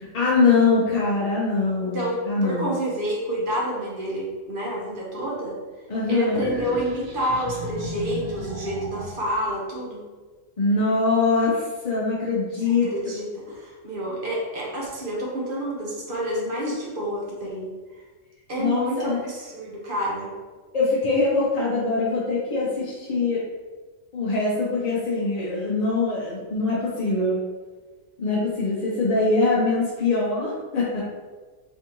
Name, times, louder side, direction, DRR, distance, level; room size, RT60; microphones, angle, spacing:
voice 1, 0.1-2.0 2.3-2.7 5.9-6.4 10.6-12.9 18.6-19.2 20.7-23.4 24.1-27.4 28.2-31.0, left 3 dB, 40° left, -6 dB, 0.6 m, -23 dB
voice 2, 1.8-5.6 6.1-10.0 12.6-18.0 18.5-20.3, equal, 45° right, -4 dB, 1.1 m, -29 dB
sound 1, 6.3-9.4, equal, 85° right, 1.3 m, -34 dB
3.5 x 3.4 x 3.0 m, 1.4 s
omnidirectional pair, 1.3 m